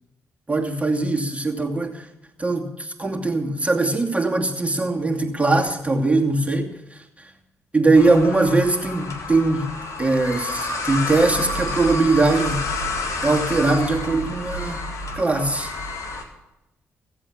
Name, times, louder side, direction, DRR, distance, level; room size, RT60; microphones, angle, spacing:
voice 1, 0.5-2.1 2.4-6.7 7.7-9.7 10.0-12.7 13.2-14.8 15.1-15.7, right 3 dB, 20° right, 1 dB, 2.5 m, -21 dB
sound 1, 7.9-16.2, left 2 dB, 55° left, 1.9 m, -29 dB
15.0 x 8.1 x 7.4 m, 0.92 s
hypercardioid pair, 40°, 6 cm